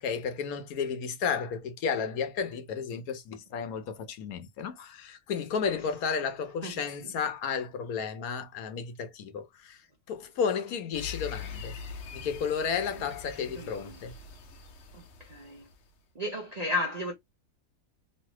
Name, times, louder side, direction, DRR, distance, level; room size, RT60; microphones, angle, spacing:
voice 1, 0.0-9.8 10.1-11.7 12.1-14.1, left 6 dB, 75° left, 1.1 m, -32 dB
sound 1, 10.9-15.9, left 6 dB, 60° left, 0.8 m, -43 dB
voice 2, 13.3-14.0 14.9-15.7 16.2-17.1, left 2 dB, 45° right, 0.5 m, -34 dB
3.2 x 2.5 x 2.9 m
omnidirectional pair, 1.6 m